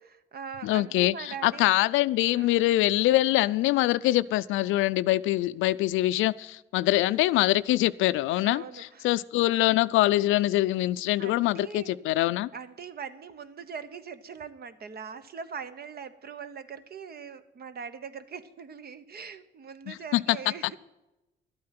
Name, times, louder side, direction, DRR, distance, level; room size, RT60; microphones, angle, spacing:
voice 1, 0.1-1.6 2.3-2.6 8.4-9.1 11.2-12.0 12.5-20.8, right 6 dB, 50° right, 1.0 m, -41 dB
voice 2, 0.6-12.5 19.9-20.4, left 16 dB, 90° left, 0.4 m, -24 dB
12.5 x 8.6 x 5.9 m
cardioid pair, 90°, 20 cm